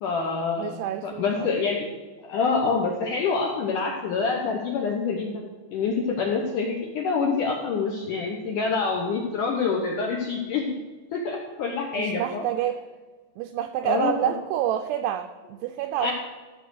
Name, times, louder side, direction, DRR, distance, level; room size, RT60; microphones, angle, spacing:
voice 1, 0.0-0.8 1.0-2.0 2.3-5.3 5.7-10.7 11.1-12.4 13.8-14.3 16.0-16.1, left 4 dB, 90° left, 0 dB, 1.8 m, -26 dB
voice 2, 0.6-1.6 11.9-12.8 13.4-16.1, right 11 dB, 85° right, 6 dB, 2.4 m, -28 dB
14.0 x 6.7 x 6.4 m, 1.3 s
omnidirectional pair, 5.4 m